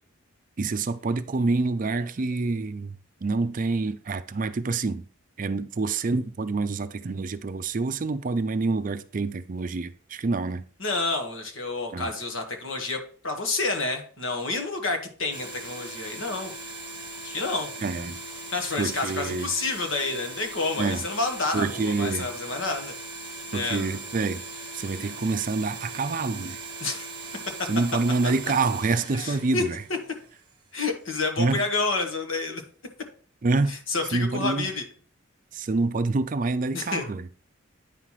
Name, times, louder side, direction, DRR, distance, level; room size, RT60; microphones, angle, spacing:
voice 1, 0.6-5.0 5.4-10.6 11.9-12.1 17.8-18.2 18.8-19.5 20.8-21.1 21.5-22.3 23.5-24.4 24.7-26.6 27.7-29.8 31.4-31.6 33.4-33.8 34.1-34.7 35.5-37.3, right 3 dB, 40° right, 0.4 m, -27 dB
voice 2, 10.8-16.5 17.2-17.7 18.5-22.9 23.5-24.0 26.8-27.1 28.2-28.3 29.1-29.6 30.7-32.6 33.7-34.8 36.7-37.1, left 3 dB, 75° left, 1.5 m, -29 dB
sound 1, 15.3-30.5, right 2 dB, 20° right, 1.6 m, -39 dB
9.1 x 5.7 x 3.1 m
head